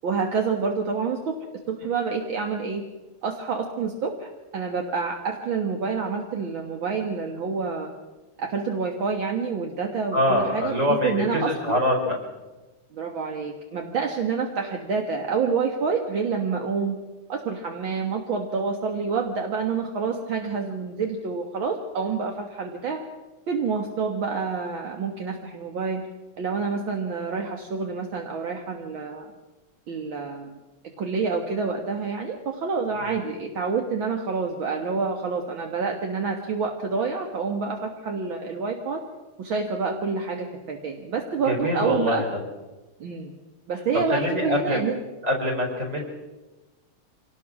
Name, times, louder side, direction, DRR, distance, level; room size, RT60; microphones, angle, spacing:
voice 1, 0.0-2.8 3.2-7.9 8.4-11.8 12.9-17.0 17.3-23.0 23.5-26.0 26.4-29.3 29.9-30.6 31.0-39.0 39.4-42.2 43.0-43.3 43.7-45.0, right 5 dB, 65° right, 2 dB, 2.3 m, -28 dB
voice 2, 10.1-12.2 41.5-42.2 44.1-44.8 45.2-46.0, left 1 dB, 35° right, 1 dB, 4.9 m, -24 dB
25.5 x 19.0 x 6.1 m, 1.1 s
omnidirectional pair, 2.4 m